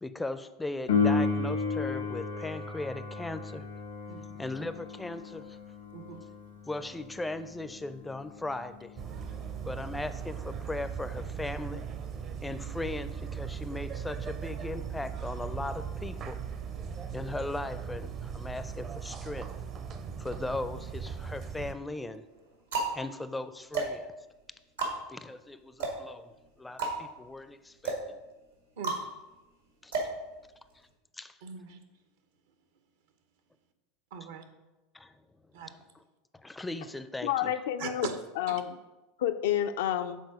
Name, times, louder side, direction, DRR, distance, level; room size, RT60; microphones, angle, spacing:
voice 1, 0.0-3.6 4.3-5.6 6.7-9.0 9.6-11.9 12.4-16.4 17.1-19.5 20.2-22.3 22.9-24.1 25.1-28.2 29.8-29.9 31.1-31.4 34.9-35.2 35.9-36.0 36.3-37.5 37.9-38.0, left 2 dB, 10° left, 12 dB, 0.4 m, -38 dB
Piano, 0.9-11.3 18.8-18.9, left 4 dB, 90° left, 1.3 m, -34 dB
sound 1, 9.0-21.7, right 7 dB, 40° right, 0.6 m, -38 dB
sound 2, 20.8-21.5 22.2-30.9, right 3 dB, 90° right, 1.8 m, -36 dB
voice 2, 31.4-31.8 34.1-34.4 35.5-35.7 37.8-38.2 38.5-38.6, right 6 dB, 75° right, 8 dB, 0.8 m, -40 dB
voice 3, 37.2-38.1 38.4-38.8 39.2-40.2, left 11 dB, 75° left, 9 dB, 0.4 m, -29 dB
6.8 x 3.8 x 4.8 m, 1.1 s
hypercardioid pair, 95°, 0 cm